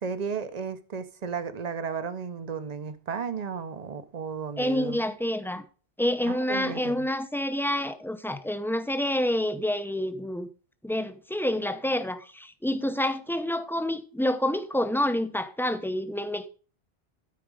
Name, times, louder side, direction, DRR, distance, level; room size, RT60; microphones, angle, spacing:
voice 1, 0.0-5.0 6.3-7.1, right 6 dB, 45° right, 0.9 m, -34 dB
voice 2, 4.6-5.6 6.0-10.5 10.8-16.5, left 1 dB, 5° left, 0.6 m, -28 dB
12.5 x 5.1 x 4.9 m
omnidirectional pair, 1.1 m